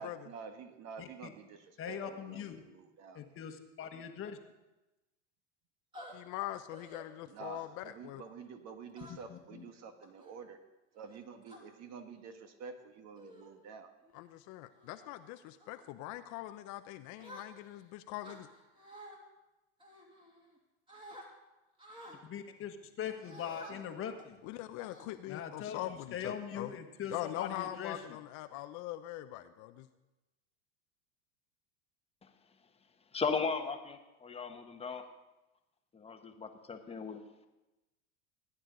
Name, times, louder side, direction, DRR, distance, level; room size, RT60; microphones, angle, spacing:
voice 1, 0.0-3.4 7.3-10.6 10.9-13.9, right 6 dB, 45° right, 7 dB, 1.5 m, -49 dB
voice 2, 1.8-2.6 3.1-4.4 9.3-9.6 22.2-24.4 25.3-28.0, left 8 dB, 35° left, 6 dB, 1.3 m, -41 dB
sound 1, 5.9-6.1 6.7-7.0 7.5-7.9 8.9-9.4 10.0-10.3 11.0-11.6 12.4-12.6 13.2-13.5 14.0-14.3 14.7-15.1 15.6-15.9 17.2-17.8 18.2-19.2 19.8-20.6 20.9-21.3 21.8-22.2 23.2-23.7 24.2-24.3 24.8-25.5, equal, 15° right, 2.6 m, -52 dB
voice 3, 6.1-8.2 14.1-18.5 24.4-26.7 27.1-29.9, left 15 dB, 50° left, 9 dB, 0.7 m, -42 dB
voice 4, 33.1-35.0 35.9-37.2, left 5 dB, 15° left, 6 dB, 1.2 m, -36 dB
19.0 x 9.9 x 3.9 m, 1.0 s
supercardioid pair, 115°, 37 cm